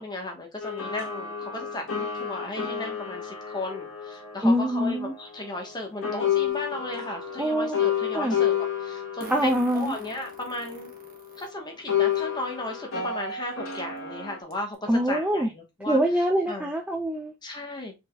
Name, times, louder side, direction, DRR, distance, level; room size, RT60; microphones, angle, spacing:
voice 1, 0.0-8.5 8.8-10.9 11.4-16.0 16.5-16.7 17.4-17.9, left 2 dB, 20° left, 1.2 m, -35 dB
sound 1, 0.6-5.8 6.0-11.5 11.9-14.4, left 8 dB, 75° left, 2.0 m, -31 dB
voice 2, 4.4-5.1 7.4-7.8 8.1-8.4 9.3-10.0 14.9-15.5 15.9-17.3, equal, 5° right, 0.4 m, -24 dB
Fart, 6.5-6.6 9.2-11.5 12.1-12.2 13.5-13.6 14.0-14.1 14.5-14.7, right 2 dB, 40° right, 1.2 m, -44 dB
5.0 x 4.2 x 2.3 m
head